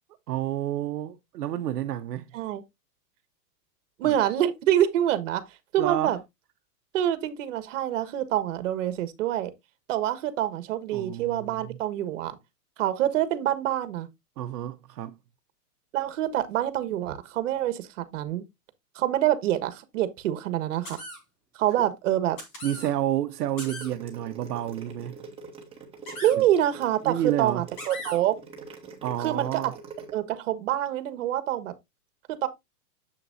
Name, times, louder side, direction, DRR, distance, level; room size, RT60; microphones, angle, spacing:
voice 1, 0.3-2.3 4.0-4.1 5.8-6.2 10.9-11.8 14.4-15.2 22.6-25.2 26.4-26.5 27.0-27.7 29.0-29.7, right 12 dB, 80° right, 0.9 m, -30 dB
voice 2, 4.0-5.4 5.7-6.2 6.9-9.5 9.9-12.4 12.8-14.1 15.9-18.4 18.9-21.0 21.5-22.4 26.2-28.4 29.2-29.7 30.1-31.7 32.4-32.5, right 12 dB, 55° right, 1.5 m, -26 dB
sound 1, 20.8-21.2 22.4-22.9 23.6-23.9 26.1-26.3 27.8-28.2, left 1 dB, 5° left, 0.4 m, -39 dB
sound 2, 23.5-30.1, right 5 dB, 10° right, 1.8 m, -44 dB
7.6 x 6.8 x 2.6 m
supercardioid pair, 160°, 47 cm